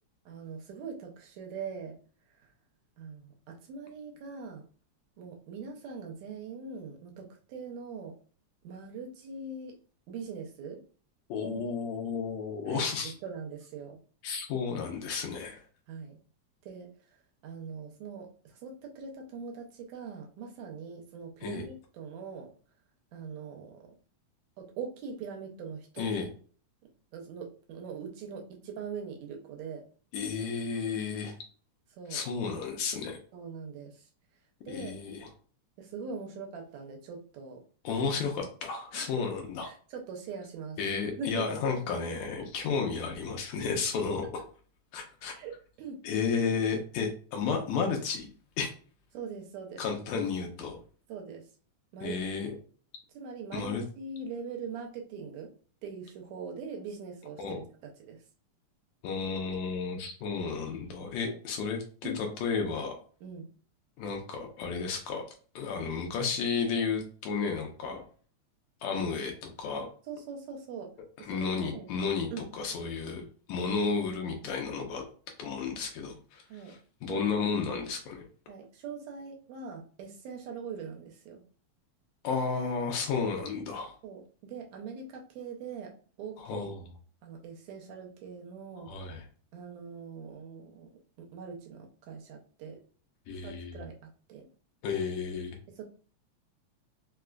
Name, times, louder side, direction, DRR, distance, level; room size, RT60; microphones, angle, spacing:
voice 1, 0.3-2.0 2.4-2.5 3.0-4.7 5.2-8.2 8.6-9.8 10.1-10.8 11.4-11.6 12.7-14.0 15.9-16.2 16.6-16.9 17.4-22.5 23.1-23.9 24.6-26.1 27.1-29.9 31.9-32.2 33.3-34.1 34.6-34.9 35.8-37.6 38.9-39.1 39.6-40.8 41.2-42.1 45.3-46.0 49.1-49.8 50.1-50.2 51.1-51.5 51.9-52.2 53.1-55.5 55.8-58.2 61.3-61.4 62.0-62.3 63.2-63.5 70.1-70.9 71.2-71.9 72.3-72.5 76.5-76.8 77.1-77.3 78.5-81.4 84.0-86.7 87.2-88.9 89.5-90.9 91.2-92.8 93.4-94.5 95.7-95.8, right 5 dB, 75° right, 2 dB, 1.8 m, -42 dB
voice 2, 11.3-13.1 14.2-15.6 21.4-21.7 26.0-26.3 30.1-31.4 32.1-33.2 34.7-35.3 37.8-39.7 40.8-44.3 44.9-45.3 46.0-48.3 48.6-48.7 49.8-50.8 52.0-52.6 53.5-53.8 57.4-57.6 59.0-63.0 64.0-65.2 65.6-68.0 68.8-69.9 71.3-73.2 73.5-75.0 75.4-78.2 82.2-83.9 86.4-86.9 88.9-89.2 93.3-93.9 94.8-95.6, left 5 dB, 75° left, 2 dB, 1.9 m, -32 dB
4.9 x 2.3 x 2.2 m, 0.41 s
omnidirectional pair, 3.4 m